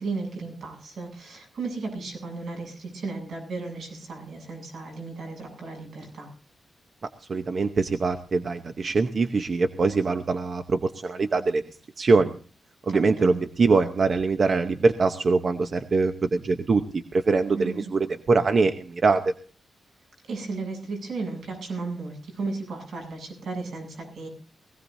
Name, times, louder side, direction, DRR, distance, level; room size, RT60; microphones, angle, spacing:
voice 1, 0.0-6.3 12.9-13.3 17.5-17.8 20.3-24.3, right 3 dB, 85° right, 3 dB, 7.9 m, -34 dB
voice 2, 7.3-11.6 12.0-12.4 12.9-19.3, right 4 dB, 45° right, 7 dB, 0.8 m, -23 dB
20.5 x 16.5 x 2.7 m, 0.39 s
wide cardioid pair, 140°, 0 cm